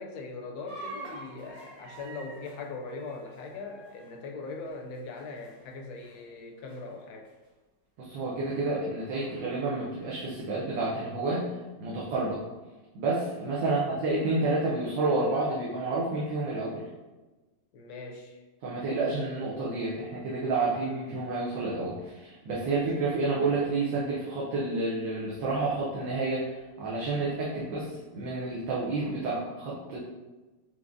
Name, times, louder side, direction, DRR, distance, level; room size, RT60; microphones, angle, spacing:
voice 1, 0.0-7.3 13.6-14.0 17.7-18.4 22.6-23.1, left 3 dB, 70° left, 2 dB, 1.0 m, -41 dB
sound 1, 0.7-5.7 6.0-6.4 6.7-6.8 7.4-7.5 8.5-10.1, right 2 dB, 50° right, 1.6 m, -47 dB
voice 2, 8.0-11.5 11.8-12.4 12.9-16.9 18.6-30.0, right 3 dB, 85° right, -6 dB, 1.4 m, -30 dB
4.6 x 3.6 x 2.5 m, 1.2 s
omnidirectional pair, 1.9 m